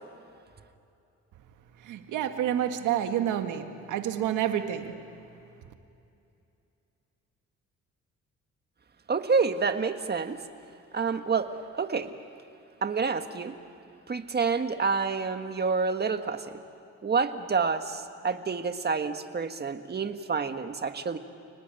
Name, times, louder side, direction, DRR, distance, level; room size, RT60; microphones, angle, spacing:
voice 1, 1.8-5.0, right 10 dB, 85° right, 7 dB, 1.9 m, -29 dB
voice 2, 9.1-10.4 10.9-11.5 11.7-12.1 12.8-13.5 14.1-16.6 17.0-21.2, right 5 dB, 35° right, 7 dB, 1.7 m, -28 dB
29.5 x 19.0 x 9.2 m, 2.6 s
cardioid pair, 90°, 30 cm